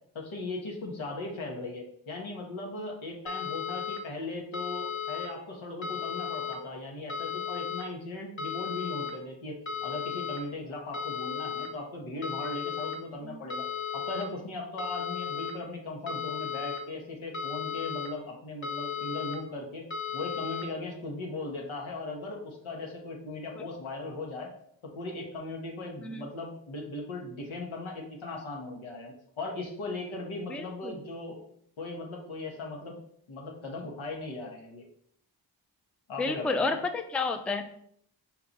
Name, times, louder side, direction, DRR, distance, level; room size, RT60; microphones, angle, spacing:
voice 1, 0.1-9.6 9.8-13.7 13.9-19.9 20.1-24.5 24.8-31.4 31.8-33.0 33.3-34.8 36.1-36.7, left 2 dB, 85° left, 1 dB, 1.0 m, -38 dB
sound 1, 3.3-4.0 4.5-5.3 5.8-6.5 7.1-7.8 8.4-9.1 9.7-10.4 10.9-11.7 12.2-13.0 13.5-14.2 14.8-15.5 16.1-16.8 17.3-18.1 18.6-19.4 19.9-20.6, left 7 dB, 25° left, 0.8 m, -35 dB
voice 2, 30.5-31.0 36.2-37.6, left 3 dB, 5° left, 6 dB, 0.4 m, -30 dB
4.6 x 2.3 x 3.9 m, 0.66 s
cardioid pair, 40°, 47 cm